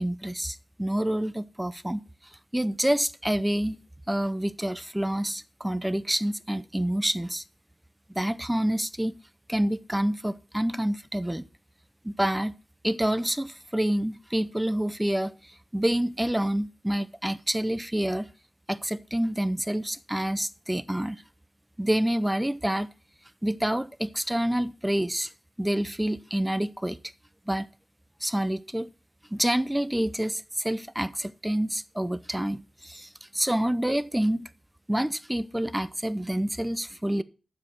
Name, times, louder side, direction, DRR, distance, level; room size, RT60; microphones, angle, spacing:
voice 1, 0.0-2.0 2.5-3.8 4.1-7.4 8.1-9.2 9.5-11.4 12.0-12.5 12.8-18.3 18.7-21.2 21.8-22.9 23.4-25.3 25.6-27.0 27.5-27.7 28.2-28.9 29.3-34.5 34.9-37.2, right 1 dB, 5° right, 0.6 m, -27 dB
8.8 x 7.5 x 6.0 m
wide cardioid pair, 85°, 0 cm